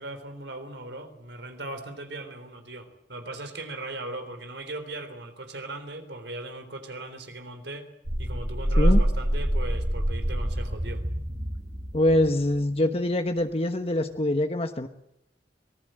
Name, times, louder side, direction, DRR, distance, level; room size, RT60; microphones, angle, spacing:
voice 1, 0.0-7.9 8.2-11.0, right 2 dB, 80° right, 8 dB, 3.7 m, -38 dB
sound 1, 8.0-12.5, equal, 45° right, 4.1 m, -26 dB
voice 2, 11.9-14.9, left 1 dB, 35° left, 7 dB, 1.1 m, -24 dB
25.0 x 19.5 x 7.7 m, 0.81 s
head